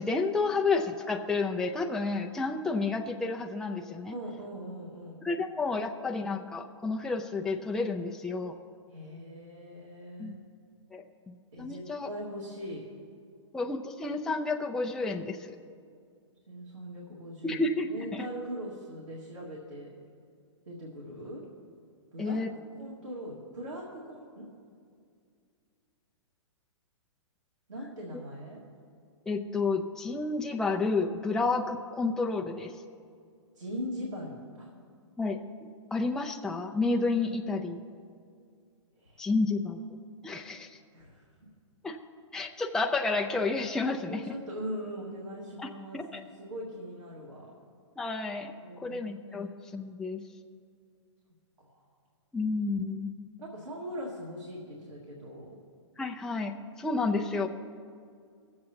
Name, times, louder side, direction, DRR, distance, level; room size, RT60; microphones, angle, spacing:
voice 1, 0.0-4.2 5.2-8.6 10.2-10.3 10.9-11.0 11.6-12.1 13.5-15.6 17.4-18.3 22.2-22.5 29.3-32.7 35.2-35.4 35.9-37.9 39.2-39.8 40.2-40.7 41.8-42.0 42.3-44.3 45.6-46.2 48.0-50.2 52.3-53.1 56.0-57.5, left 3 dB, 5° left, 2 dB, 0.4 m, -30 dB
voice 2, 4.1-5.2 8.9-10.4 11.5-12.8 16.5-17.6 17.9-19.9 20.7-21.4 22.1-22.4 22.7-24.5 27.7-28.6 33.6-34.7 39.0-39.3 40.9-41.2 44.1-47.5 48.6-49.4 51.6-51.8 53.4-55.5, equal, 90° right, -4 dB, 1.9 m, -41 dB
20.5 x 7.7 x 2.9 m, 2.2 s
hypercardioid pair, 125°, 16 cm